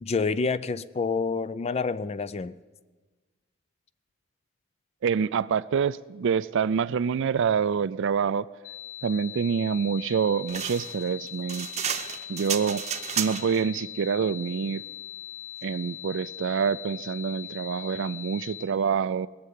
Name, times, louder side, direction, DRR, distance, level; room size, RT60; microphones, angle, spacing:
voice 1, 0.0-2.5, left 4 dB, 30° left, 0.4 m, -28 dB
voice 2, 5.0-8.5 9.0-11.7 12.3-12.8 13.2-14.8 15.6-19.3, right 6 dB, 60° right, 0.4 m, -26 dB
sound 1, 8.6-18.6, left 12 dB, 70° left, 1.3 m, -41 dB
sound 2, 10.5-13.6, right 8 dB, 30° right, 0.8 m, -32 dB
20.0 x 6.8 x 9.4 m
head